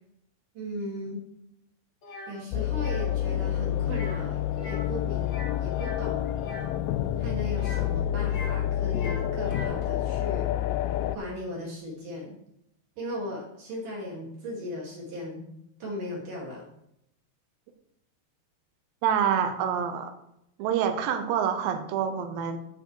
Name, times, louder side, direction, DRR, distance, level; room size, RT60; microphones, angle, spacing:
voice 1, 0.5-1.3 2.3-5.3 5.6-6.3 7.2-10.5 11.1-12.3 13.0-15.5 15.8-16.6, left 1 dB, 55° right, -3 dB, 3.2 m, -37 dB
sound 1, 2.0-2.3 2.7-3.1 3.8-4.2 4.5-4.9 5.2-6.7 7.5-8.6 8.9-9.8, left 1 dB, 35° left, 2.2 m, -42 dB
sound 2, 2.5-11.2, left 11 dB, 85° left, 2.8 m, -28 dB
voice 2, 19.0-20.1 20.6-22.6, right 8 dB, 80° right, 7 dB, 3.2 m, -26 dB
9.4 x 7.0 x 4.8 m, 0.78 s
omnidirectional pair, 5.0 m